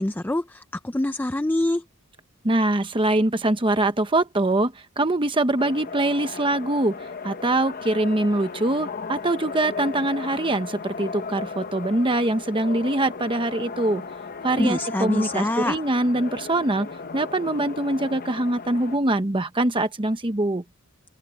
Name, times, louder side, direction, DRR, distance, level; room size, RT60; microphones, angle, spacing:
voice 1, 0.0-1.8 14.6-15.8, left 1 dB, 10° left, 0.4 m, -25 dB
voice 2, 2.4-14.0 14.4-20.6, right 2 dB, 25° right, 1.0 m, -23 dB
sound 1, 5.6-19.0, left 4 dB, 45° left, 0.9 m, -36 dB
head